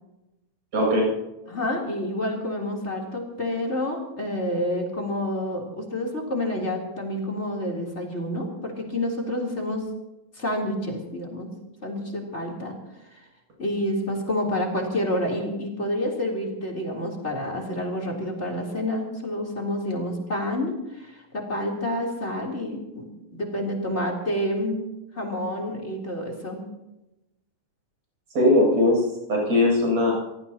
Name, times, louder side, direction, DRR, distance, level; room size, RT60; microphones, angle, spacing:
voice 1, 0.7-1.1 28.3-29.0 29.3-30.1, left 1 dB, 50° right, -2 dB, 9.2 m, -19 dB
voice 2, 1.5-9.9 10.3-11.5 11.8-12.8 13.1-13.2 13.6-24.9 25.2-26.7, left 1 dB, 20° left, 1 dB, 3.5 m, -29 dB
26.5 x 18.5 x 3.0 m, 0.95 s
omnidirectional pair, 3.9 m